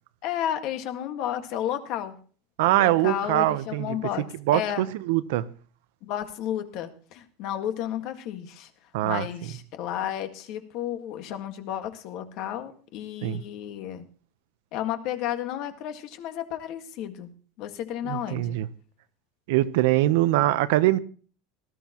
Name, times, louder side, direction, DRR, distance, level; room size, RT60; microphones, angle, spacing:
voice 1, 0.2-2.2 2.7-4.9 6.0-8.7 9.0-14.0 14.7-17.3 17.6-18.6, left 11 dB, 45° left, 1.7 m, -32 dB
voice 2, 2.6-4.0 4.5-5.4 8.9-9.3 13.2-13.4 18.0-18.7 19.5-21.0, right 16 dB, 75° right, 0.9 m, -23 dB
18.5 x 14.0 x 3.0 m
cardioid pair, 170°, 0 cm